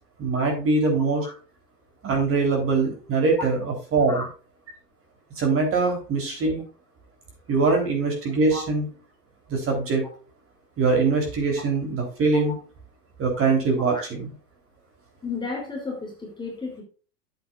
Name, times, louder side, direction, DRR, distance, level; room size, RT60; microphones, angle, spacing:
voice 1, 0.2-1.3 2.0-3.6 3.9-4.2 5.4-6.6 7.5-8.9 9.5-10.0 10.8-12.5 13.2-14.3, right 4 dB, 25° right, 2 dB, 3.6 m, -22 dB
voice 2, 15.2-16.8, left 4 dB, 10° left, -1 dB, 3.0 m, -33 dB
11.5 x 7.9 x 2.4 m, 0.36 s
hypercardioid pair, 115°, 48 cm